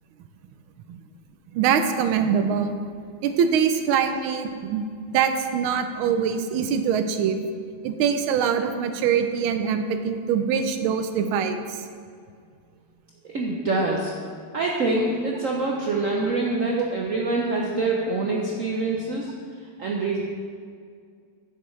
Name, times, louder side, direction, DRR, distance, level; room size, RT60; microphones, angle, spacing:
voice 1, 1.5-2.8 3.2-7.4 7.8-11.8 16.8-16.9, right 7 dB, 85° right, 8 dB, 1.5 m, -23 dB
voice 2, 13.3-14.1 14.5-19.3 19.8-20.2, right 2 dB, 70° right, -2 dB, 0.7 m, -25 dB
9.9 x 6.9 x 3.2 m, 2.2 s
omnidirectional pair, 2.2 m